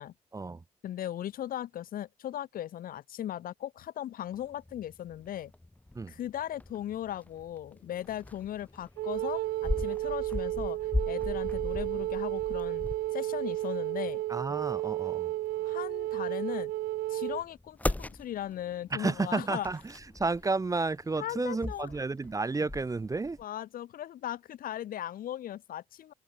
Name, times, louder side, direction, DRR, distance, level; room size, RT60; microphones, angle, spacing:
voice 1, 0.3-0.6 5.9-6.1 14.3-15.3 18.9-23.4, right 3 dB, 20° right, 0.6 m, -32 dB
voice 2, 0.8-5.5 6.1-10.8 11.1-12.8 13.1-14.2 15.7-16.7 17.1-19.7 21.2-21.9 23.4-26.1, left 11 dB, 65° left, 0.8 m, -38 dB
sound 1, 4.3-23.4, left 1 dB, 10° left, 0.8 m, -40 dB
sound 2, 7.5-12.2 12.6-13.8 14.1-14.9 15.4-16.4 17.1-21.8, left 4 dB, 30° left, 4.7 m, -65 dB
Wind instrument woodwind instrument, 9.0-17.4, right 16 dB, 75° right, 0.5 m, -32 dB
open air
supercardioid pair, 60°, 16 cm